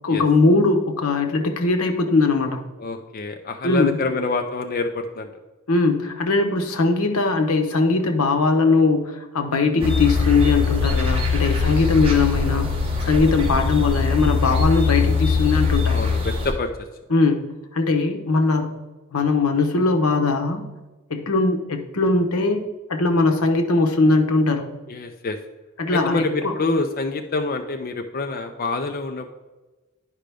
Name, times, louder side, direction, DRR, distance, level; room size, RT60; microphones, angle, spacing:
voice 1, 0.0-2.6 3.6-4.0 5.7-12.7 13.0-15.9 17.1-18.7 19.1-20.6 21.1-22.6 22.9-24.7 25.8-26.5, left 3 dB, 85° left, 5 dB, 1.0 m, -20 dB
voice 2, 2.8-5.3 9.7-9.9 11.8-11.9 15.9-16.7 24.9-25.4 25.9-29.3, left 3 dB, 40° left, 5 dB, 0.5 m, -26 dB
sound 1, 9.8-16.5, left 4 dB, 25° right, 1.3 m, -21 dB
10.5 x 5.1 x 3.4 m, 1.2 s
head